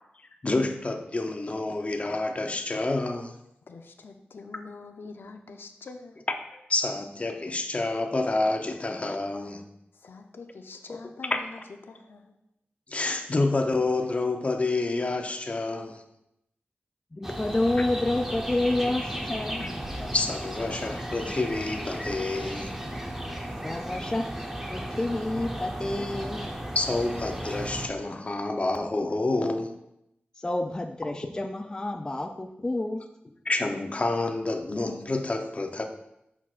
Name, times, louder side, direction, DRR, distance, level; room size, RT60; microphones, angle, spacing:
voice 1, 0.4-3.3 6.5-9.6 10.9-11.0 12.9-16.0 19.6-19.7 20.1-22.8 26.7-29.7 33.4-35.8, left 2 dB, 35° left, 4 dB, 0.7 m, -28 dB
voice 2, 3.7-6.2 9.9-12.4, left 3 dB, 75° left, 5 dB, 0.6 m, -45 dB
voice 3, 17.1-19.6 23.6-24.3 24.7-26.5 30.4-33.1, left 2 dB, 20° left, 6 dB, 0.3 m, -29 dB
sound 1, 17.2-27.9, equal, 10° right, 0.8 m, -35 dB
8.3 x 5.9 x 2.5 m, 0.82 s
wide cardioid pair, 90°, 4 cm